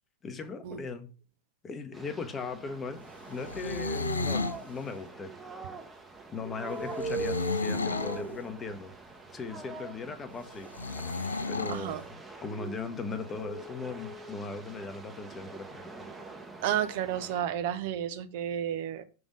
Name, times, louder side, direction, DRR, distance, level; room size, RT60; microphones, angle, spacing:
voice 1, 0.2-1.1 1.6-3.0 3.3-5.3 6.3-8.9 9.3-10.7 11.5-15.8, left 4 dB, 20° left, 0.8 m, -38 dB
sound 1, 1.9-17.4, right 2 dB, 10° right, 0.9 m, -41 dB
sound 2, 3.4-4.6 7.0-8.2 10.7-11.8, left 3 dB, 75° left, 0.4 m, -32 dB
voice 2, 11.7-12.0 16.6-19.0, right 10 dB, 50° right, 0.5 m, -31 dB
6.1 x 3.5 x 5.1 m
figure-of-eight pair, 90°, 0 cm